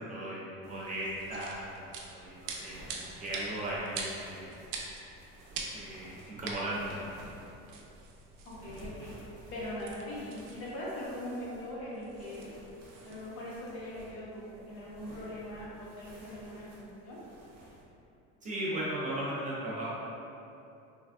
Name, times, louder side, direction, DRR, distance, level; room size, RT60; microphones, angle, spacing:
voice 1, 0.0-4.6 5.7-7.3 18.4-19.9, right 1 dB, 25° right, -7 dB, 0.4 m, -37 dB
sound 1, 0.6-17.8, right 1 dB, 65° right, 0.8 m, -54 dB
sound 2, 1.1-13.3, right 4 dB, 90° right, 0.5 m, -45 dB
voice 2, 8.4-9.1 9.5-12.5 13.0-17.2, left 1 dB, 50° left, -8 dB, 1.0 m, -41 dB
3.2 x 2.3 x 2.3 m, 2.8 s
cardioid pair, 140°, 29 cm